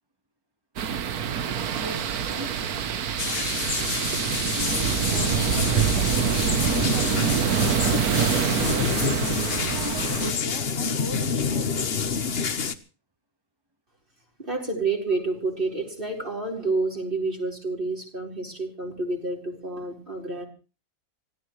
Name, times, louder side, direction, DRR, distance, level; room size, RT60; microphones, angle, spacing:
sound 1, 0.8-10.3, right 8 dB, 80° right, 1.5 m, -25 dB
voice 1, 1.4-3.2 4.2-7.4 7.9-9.4 9.7-11.9, right 1 dB, 15° right, 4 dB, 1.5 m, -39 dB
sound 2, 3.2-12.7, left 5 dB, 45° left, 1.2 m, -28 dB
voice 2, 14.4-20.5, right 3 dB, 35° right, 0 dB, 4.7 m, -29 dB
25.0 x 16.5 x 3.2 m, 0.35 s
omnidirectional pair, 1.6 m